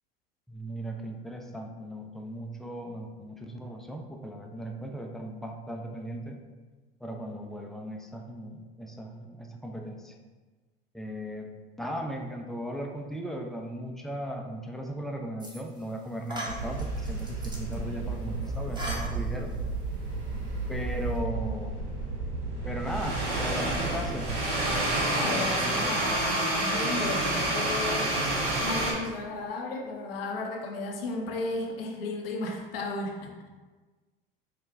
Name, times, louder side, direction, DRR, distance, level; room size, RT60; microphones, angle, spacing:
voice 1, 0.5-6.4 7.0-10.2 10.9-11.5 11.8-19.5 20.7-21.8 22.6-24.4, equal, ahead, 1 dB, 0.4 m, -37 dB
sound 1, 15.4-15.9 16.3-17.8 18.4-19.6, equal, 15° right, 0.9 m, -39 dB
sound 2, 16.5-28.9, right 2 dB, 65° right, 1.0 m, -30 dB
voice 2, 25.1-28.1 28.6-33.3, left 2 dB, 75° left, 1 dB, 0.7 m, -34 dB
4.7 x 2.1 x 3.4 m, 1.3 s
hypercardioid pair, 75°, 29 cm